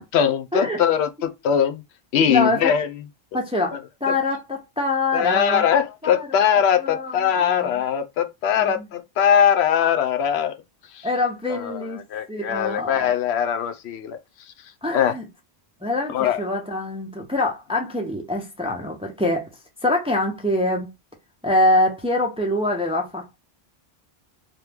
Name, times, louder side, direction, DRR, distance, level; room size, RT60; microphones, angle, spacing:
voice 1, 0.0-1.8 2.1-2.9 4.1-4.2 5.1-10.5 10.9-11.1 11.5-11.8 12.1-14.2 14.9-15.1 16.1-16.4, left 8 dB, 85° left, 0.8 m, -21 dB
voice 2, 2.3-2.7 3.3-5.6 6.0-6.3 6.8-7.7 8.6-8.8 11.0-12.0 12.3-13.1 14.8-15.3 15.8-19.5 19.8-20.9 21.4-23.4, left 2 dB, 5° right, 0.5 m, -24 dB
2.9 x 2.1 x 3.3 m
omnidirectional pair, 1.1 m